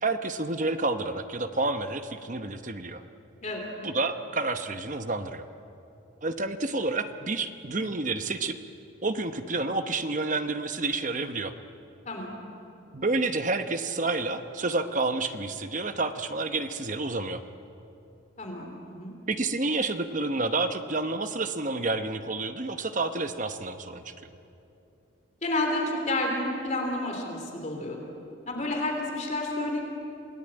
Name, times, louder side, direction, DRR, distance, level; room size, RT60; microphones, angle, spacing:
voice 1, 0.0-3.0 3.8-5.5 6.2-8.6 9.0-11.5 12.9-17.4 19.3-24.3, right 3 dB, 40° right, 8 dB, 1.0 m, -29 dB
voice 2, 18.4-19.1 25.4-28.0 28.5-29.8, left 2 dB, 35° left, 1 dB, 3.3 m, -30 dB
27.5 x 18.0 x 9.0 m, 2.8 s
head